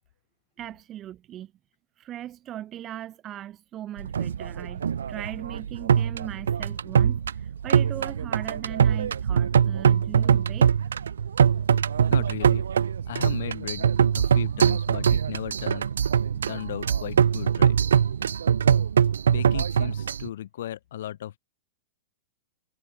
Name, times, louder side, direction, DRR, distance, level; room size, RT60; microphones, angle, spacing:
voice 1, 0.6-1.5 2.0-10.9, right 12 dB, 30° right, 2.6 m, -39 dB
sound 1, 4.0-20.3, right 8 dB, 75° right, 1.5 m, -23 dB
voice 2, 12.1-12.7 13.1-15.9 16.3-17.8 19.3-21.3, left 12 dB, 65° left, 5.3 m, -36 dB
hypercardioid pair, 105°, 0 cm